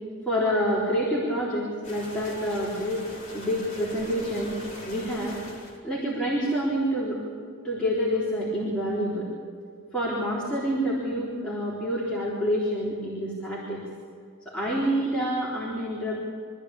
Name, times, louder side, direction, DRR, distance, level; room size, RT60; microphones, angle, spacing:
voice 1, 0.3-3.0 3.3-4.6 4.8-5.4 5.8-7.2 7.6-9.3 9.9-13.8 14.5-16.2, equal, 5° left, -7 dB, 3.9 m, -27 dB
sound 1, 1.8-5.8, left 1 dB, 30° left, 4.2 m, -42 dB
25.0 x 14.5 x 8.6 m, 2.2 s
head